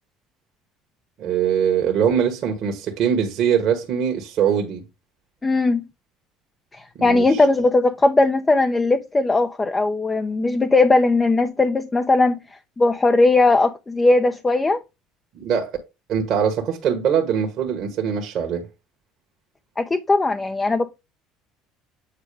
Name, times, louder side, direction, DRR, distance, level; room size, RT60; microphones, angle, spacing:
voice 1, 1.2-4.9 6.9-7.4 15.3-15.8 16.1-18.6, right 8 dB, 55° right, 1.5 m, -22 dB
voice 2, 5.4-5.8 6.7-12.4 12.8-14.8 19.8-20.9, left 2 dB, 20° left, 0.7 m, -18 dB
8.3 x 4.5 x 3.4 m
hypercardioid pair, 70°, 0 cm